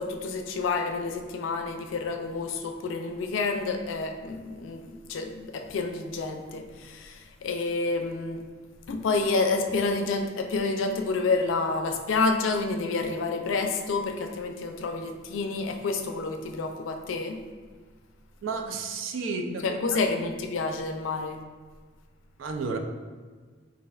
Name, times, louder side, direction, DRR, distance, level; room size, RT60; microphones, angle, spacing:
voice 1, 0.0-8.4 8.9-17.4 19.6-21.4, left 3 dB, 80° left, 5 dB, 0.4 m, -29 dB
voice 2, 18.4-20.0 22.4-22.8, right 4 dB, 85° right, 4 dB, 0.4 m, -32 dB
4.2 x 2.5 x 2.3 m, 1.5 s
head